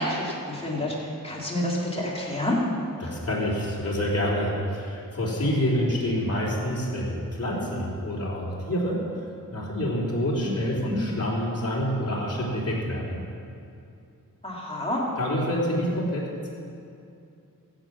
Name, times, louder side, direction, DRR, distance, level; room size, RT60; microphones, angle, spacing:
voice 1, 0.0-2.6 10.4-10.5 10.9-11.0 14.4-15.0, left 1 dB, 15° left, -5 dB, 3.1 m, -28 dB
voice 2, 3.0-9.0 9.5-13.2 15.2-16.5, equal, 45° left, -5 dB, 3.6 m, -27 dB
15.5 x 7.9 x 6.0 m, 2.5 s
wide cardioid pair, 90°, 35 cm